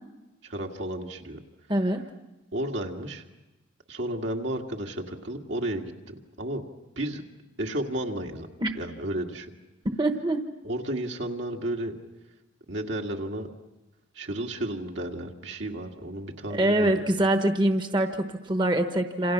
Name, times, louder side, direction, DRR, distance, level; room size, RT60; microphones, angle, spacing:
voice 1, 0.4-1.4 2.5-3.2 3.9-6.7 7.0-7.2 7.6-8.5 8.7-9.5 10.6-11.9 12.7-13.5 14.2-17.1, right 1 dB, 75° right, 2 dB, 2.1 m, -32 dB
voice 2, 1.7-2.0 8.6-8.7 9.8-10.4 16.5-19.3, right 1 dB, 25° right, 6 dB, 1.1 m, -24 dB
28.0 x 27.5 x 6.1 m, 1.0 s
head